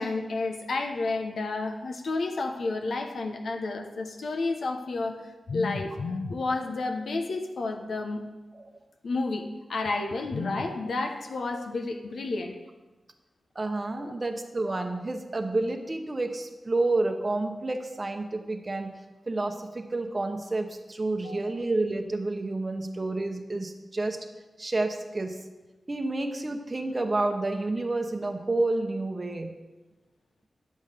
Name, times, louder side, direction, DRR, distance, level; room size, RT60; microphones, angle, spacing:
voice 1, 0.0-8.2 9.0-12.6 14.0-14.1 21.2-21.6, left 3 dB, 75° left, 4 dB, 1.0 m, -31 dB
voice 2, 13.5-18.9 19.3-24.2 24.6-25.4 25.9-29.5, right 2 dB, 30° right, 4 dB, 0.9 m, -29 dB
10.5 x 7.8 x 5.0 m, 1.2 s
wide cardioid pair, 115°, 0 cm